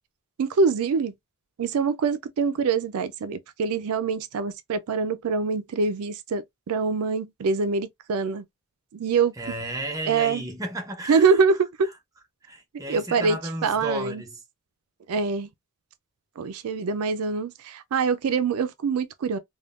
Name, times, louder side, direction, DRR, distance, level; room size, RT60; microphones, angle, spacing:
voice 1, 0.4-1.1 1.6-8.4 8.9-9.3 10.0-10.5 11.1-11.9 12.9-14.2 15.1-15.5 16.4-19.4, right 5 dB, 80° right, 0.4 m, -24 dB
voice 2, 9.4-11.4 12.4-14.4, right 1 dB, 15° right, 0.7 m, -33 dB
3.5 x 2.2 x 2.3 m
head